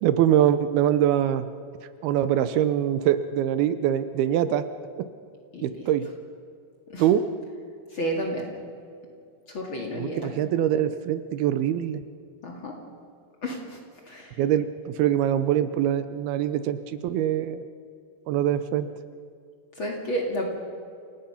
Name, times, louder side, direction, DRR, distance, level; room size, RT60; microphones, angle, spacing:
voice 1, 0.0-1.4 2.0-4.7 5.6-6.1 7.0-7.2 9.9-12.0 14.4-17.6 18.3-18.9, right 11 dB, 80° right, 12 dB, 2.5 m, -23 dB
voice 2, 5.5-5.9 6.9-7.1 7.9-8.5 9.5-10.3 12.4-12.7 13.4-13.8 14.1-14.4 19.8-20.5, equal, 40° left, 0 dB, 2.3 m, -31 dB
28.0 x 18.0 x 5.7 m, 2.4 s
omnidirectional pair, 4.7 m